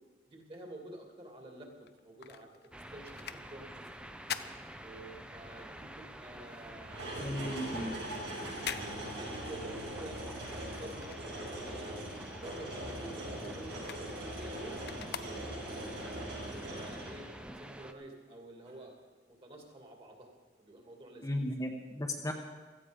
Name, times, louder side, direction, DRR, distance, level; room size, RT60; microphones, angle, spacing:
voice 1, 0.3-2.5 2.9-4.0 4.8-8.1 8.4-10.2 10.6-12.0 12.3-15.8 16.2-17.3 17.5-18.9 19.3-20.3 20.6-21.4 22.2-22.3, right 1 dB, 30° right, 2 dB, 2.5 m, -50 dB
sound 1, 1.8-5.5 5.8-11.8 12.1-15.9 16.4-16.5, left 8 dB, 60° left, 0.6 m, -46 dB
sound 2, 2.7-17.9, right 1 dB, 5° right, 0.6 m, -49 dB
sound 3, 6.8-17.6 18.7-18.8, right 1 dB, 75° right, 5.7 m, -41 dB
voice 2, 7.2-7.9 21.2-22.3, left 1 dB, 20° left, 1 dB, 1.1 m, -35 dB
16.5 x 13.5 x 5.1 m, 1.3 s
head